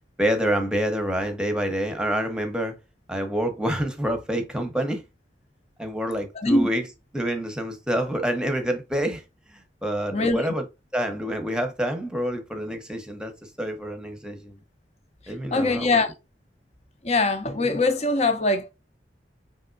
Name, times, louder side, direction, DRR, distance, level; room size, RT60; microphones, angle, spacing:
voice 1, 0.2-2.8 3.1-5.0 5.8-6.9 7.1-9.2 9.5-10.7 10.9-14.6 15.3-16.0, equal, 5° right, 1.0 m, -27 dB
voice 2, 6.4-6.7 10.1-10.4 15.5-16.1 17.0-18.7, left 2 dB, 35° left, 0.8 m, -22 dB
5.3 x 3.5 x 2.6 m
head